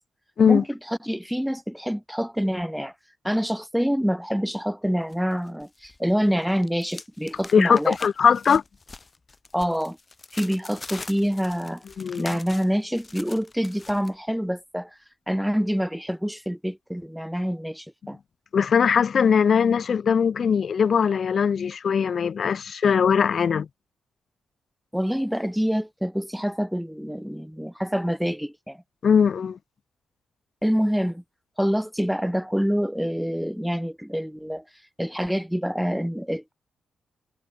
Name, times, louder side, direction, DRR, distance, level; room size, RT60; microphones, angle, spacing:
voice 1, 0.5-2.9 3.2-8.0 9.5-10.0 10.3-11.8 12.2-14.9 15.3-18.2 24.9-28.8 30.6-31.2 31.6-34.6 35.0-36.5, equal, ahead, 1.1 m, -26 dB
sound 1, 5.1-6.0 6.3-14.1, left 3 dB, 35° left, 1.0 m, -43 dB
voice 2, 7.5-8.6 12.0-12.3 18.5-23.7 29.0-29.6, left 6 dB, 60° left, 0.4 m, -20 dB
hypercardioid pair, 45°, 0 cm